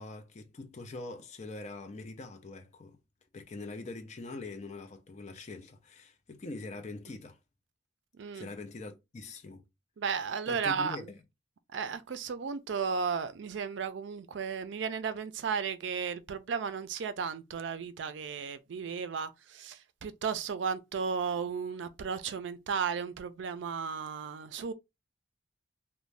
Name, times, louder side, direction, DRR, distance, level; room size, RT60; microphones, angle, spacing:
voice 1, 0.0-3.0 3.3-7.4 8.3-9.6 10.5-11.2, left 3 dB, 35° left, 0.4 m, -43 dB
voice 2, 8.2-8.5 10.0-11.0 11.7-24.7, right 6 dB, 70° right, 0.4 m, -34 dB
2.5 x 2.1 x 3.2 m
head